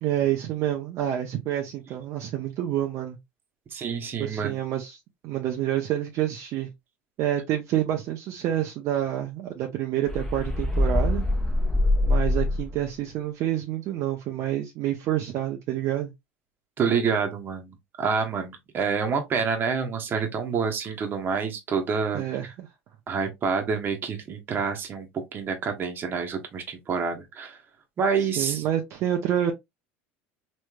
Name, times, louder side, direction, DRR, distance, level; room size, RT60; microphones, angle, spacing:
voice 1, 0.0-3.2 4.2-5.0 5.2-6.7 7.2-11.2 12.0-16.1 22.1-22.7 28.2-29.5, right 12 dB, 60° right, 0.6 m, -28 dB
voice 2, 3.7-4.6 16.8-22.2 23.1-27.6 28.0-28.6, right 5 dB, 40° right, 1.0 m, -27 dB
sound 1, 10.1-12.9, left 1 dB, 10° left, 0.9 m, -24 dB
3.2 x 3.1 x 2.3 m
supercardioid pair, 105°, 6 cm